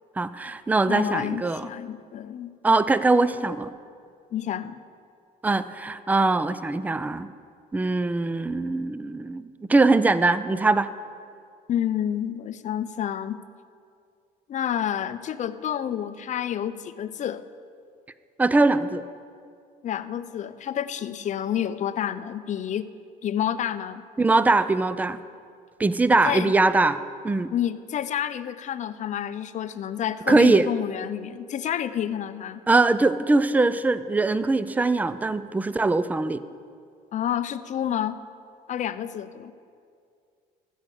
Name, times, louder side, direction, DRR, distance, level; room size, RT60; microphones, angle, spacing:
voice 1, 0.2-1.7 2.6-3.7 5.4-7.3 7.7-10.9 18.4-19.0 24.2-25.2 25.8-27.5 30.3-30.7 32.7-36.4, right 3 dB, 10° right, 14 dB, 0.4 m, -22 dB
voice 2, 0.9-2.5 4.3-4.8 11.7-13.4 14.5-17.4 19.8-22.9 23.2-24.0 26.2-26.5 27.5-32.6 37.1-38.2 38.7-39.5, left 10 dB, 45° left, 13 dB, 0.5 m, -29 dB
15.0 x 6.4 x 6.5 m, 2.3 s
cardioid pair, 110°, 17 cm